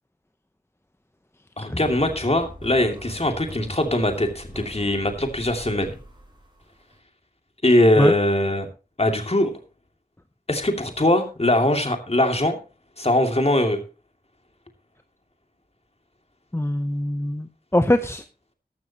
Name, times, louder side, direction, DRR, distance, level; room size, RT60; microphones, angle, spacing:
voice 1, 1.6-5.9 7.6-8.7 9.0-9.5 10.5-12.6 13.0-13.8, left 1 dB, 40° left, 5 dB, 2.5 m, -21 dB
sound 1, 1.8-7.0, right 1 dB, 30° right, 5.6 m, -41 dB
voice 2, 16.5-18.2, left 1 dB, 15° left, 9 dB, 0.8 m, -22 dB
14.5 x 12.0 x 3.0 m, 0.32 s
wide cardioid pair, 45°, 16 cm